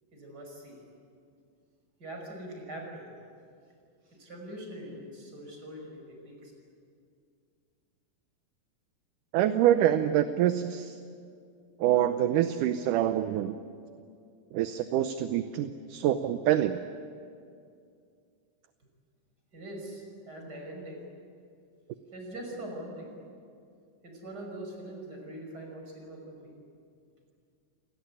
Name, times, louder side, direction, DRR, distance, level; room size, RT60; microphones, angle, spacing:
voice 1, 0.1-0.8 2.0-3.1 4.1-6.5 19.5-21.0 22.1-23.1 24.0-26.5, right 1 dB, 25° right, 1 dB, 6.1 m, -42 dB
voice 2, 9.3-11.0 11.8-13.6 14.5-16.8, right 11 dB, 75° right, 9 dB, 2.2 m, -26 dB
28.5 x 19.0 x 9.7 m, 2.3 s
omnidirectional pair, 3.9 m